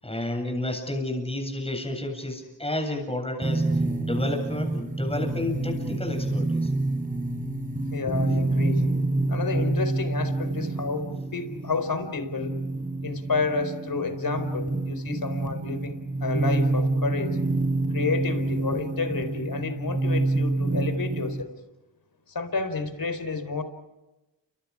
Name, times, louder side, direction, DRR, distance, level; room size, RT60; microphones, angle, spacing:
voice 1, 0.0-3.6 4.0-6.7, left 1 dB, 10° left, 3 dB, 7.9 m, -31 dB
sound 1, 3.4-21.4, right 2 dB, 15° right, 4.8 m, -27 dB
voice 2, 7.9-8.8 9.3-12.6 13.0-17.4 17.9-21.6 22.3-23.6, left 4 dB, 45° left, 10 dB, 4.5 m, -30 dB
29.5 x 26.5 x 5.0 m, 1.0 s
supercardioid pair, 50°, 47 cm